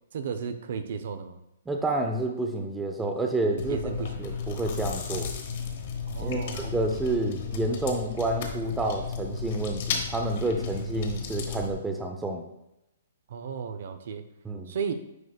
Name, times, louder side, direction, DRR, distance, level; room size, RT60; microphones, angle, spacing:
voice 1, 0.1-1.4 3.6-4.3 6.1-6.7 13.3-14.2 14.7-14.9, right 6 dB, 60° right, 9 dB, 0.6 m, -34 dB
voice 2, 1.7-3.8 4.2-5.3 6.2-12.5 14.4-14.7, right 2 dB, 10° right, 3 dB, 0.5 m, -29 dB
Chewing mastication, 3.6-11.7, left 6 dB, 50° left, 1.1 m, -34 dB
9.3 x 4.9 x 2.4 m, 0.86 s
hypercardioid pair, 160°, 0 cm